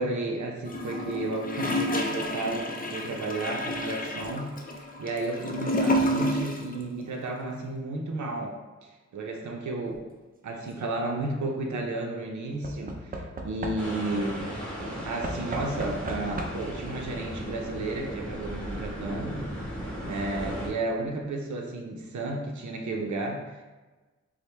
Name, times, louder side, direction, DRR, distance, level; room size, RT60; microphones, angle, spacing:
voice 1, 0.0-10.1 10.4-14.5 15.0-19.5 20.0-23.6, right 2 dB, 75° right, 1 dB, 0.6 m, -33 dB
Gurgling / Toilet flush, 0.7-6.7 7.0-7.1, left 1 dB, 30° left, 0.5 m, -29 dB
Knock / Wood, 10.4-10.9 12.6-14.2 15.2-16.8 17.9-18.0 18.2-18.3, right 1 dB, 30° right, 0.5 m, -37 dB
sound 1, 13.8-20.7, equal, 5° left, 1.3 m, -36 dB
4.3 x 2.1 x 3.2 m, 1.2 s
wide cardioid pair, 65°, 29 cm